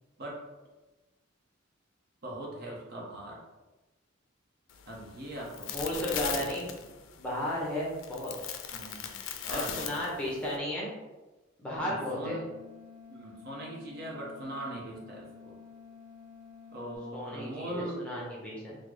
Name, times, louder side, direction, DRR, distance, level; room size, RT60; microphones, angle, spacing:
voice 1, 2.2-3.4 4.9-6.6 8.7-9.2 9.4-10.3 11.9-12.4 13.1-15.6 16.7-18.0, right 1 dB, 50° right, -2 dB, 0.7 m, -41 dB
sound 1, 4.7-10.6, left 8 dB, 70° left, 0.3 m, -39 dB
voice 2, 5.7-6.9 7.1-8.3 9.5-10.9 11.6-12.4 17.1-18.8, left 1 dB, 5° left, -5 dB, 0.7 m, -34 dB
sound 2, 11.8-17.0, left 6 dB, 35° right, 1.1 m, -51 dB
3.7 x 2.0 x 3.1 m, 1.1 s
head